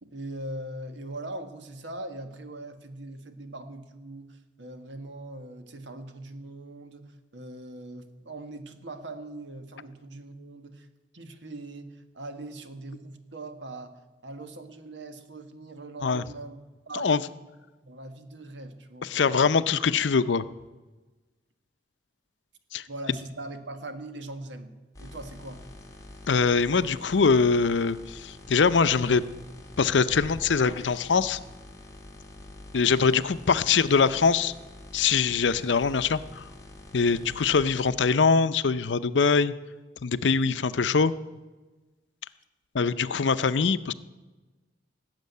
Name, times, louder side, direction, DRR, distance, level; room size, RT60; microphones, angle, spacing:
voice 1, 0.0-10.9 11.1-13.9 14.2-16.6 16.9-17.3 17.8-19.3 22.9-24.7 25.0-25.6 33.0-33.2 37.0-37.3 40.4-40.5, right 2 dB, 85° right, 8 dB, 1.5 m, -41 dB
voice 2, 19.1-20.4 22.7-22.8 26.3-29.2 29.8-31.4 32.7-34.5 34.9-36.4 36.9-39.5 40.0-41.1 42.7-43.9, left 5 dB, 90° left, 14 dB, 0.6 m, -23 dB
sound 1, 24.9-37.9, left 1 dB, 20° left, 2.0 m, -46 dB
18.0 x 7.5 x 9.4 m, 1.2 s
head